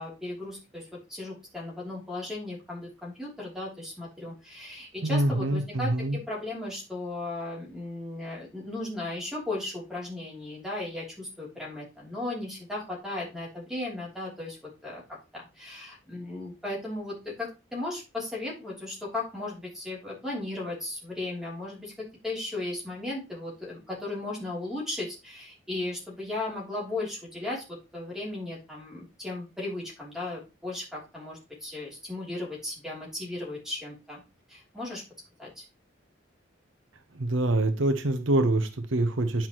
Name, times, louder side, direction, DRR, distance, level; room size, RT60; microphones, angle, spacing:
voice 1, 0.0-15.0 15.3-34.2 34.5-35.0 35.4-35.6, left 2 dB, ahead, -4 dB, 3.1 m, -36 dB
voice 2, 5.0-6.2 37.2-39.5, right 1 dB, 80° right, 9 dB, 0.9 m, -25 dB
9.4 x 5.9 x 3.0 m, 0.28 s
head